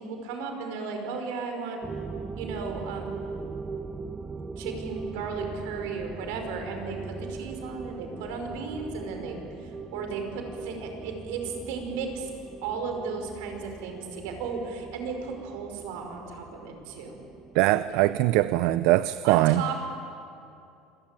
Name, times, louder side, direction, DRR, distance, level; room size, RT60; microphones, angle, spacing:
voice 1, 0.0-1.8 2.4-3.2 4.6-12.3 12.6-17.2 19.2-19.8, right 5 dB, 85° right, 4 dB, 5.3 m, -35 dB
sound 1, 1.8-19.1, right 4 dB, 15° right, 0.6 m, -40 dB
voice 2, 17.5-19.6, right 16 dB, 65° right, 14 dB, 0.5 m, -22 dB
26.5 x 22.0 x 9.1 m, 2.6 s
cardioid pair, 165°, 0 cm